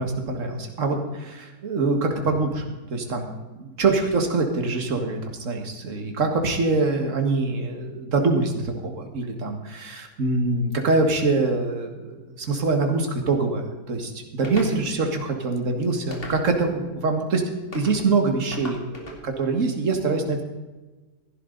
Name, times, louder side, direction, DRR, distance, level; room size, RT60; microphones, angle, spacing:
voice 1, 0.0-3.3 3.6-17.4 17.7-20.4, right 3 dB, 50° right, 4 dB, 2.1 m, -24 dB
sound 1, 14.4-14.8 16.1-16.7 17.7-18.0 18.5-19.2, left 2 dB, 35° left, 2.6 m, -37 dB
16.0 x 11.5 x 4.0 m, 1.2 s
omnidirectional pair, 1.8 m